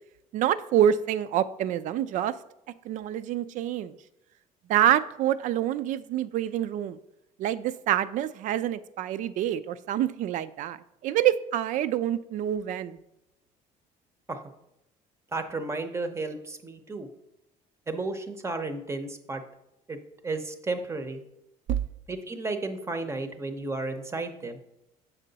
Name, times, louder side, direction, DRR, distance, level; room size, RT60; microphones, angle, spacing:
voice 1, 0.3-2.3 2.9-3.9 4.7-7.0 7.4-10.8 11.0-13.0 21.7-21.8, right 11 dB, 60° right, 14 dB, 0.4 m, -26 dB
voice 2, 15.3-17.1 17.9-19.4 19.9-20.0 20.2-21.2 22.1-24.6, right 3 dB, 20° right, 8 dB, 0.7 m, -33 dB
7.2 x 5.6 x 4.0 m, 0.86 s
cardioid pair, 120°, 15 cm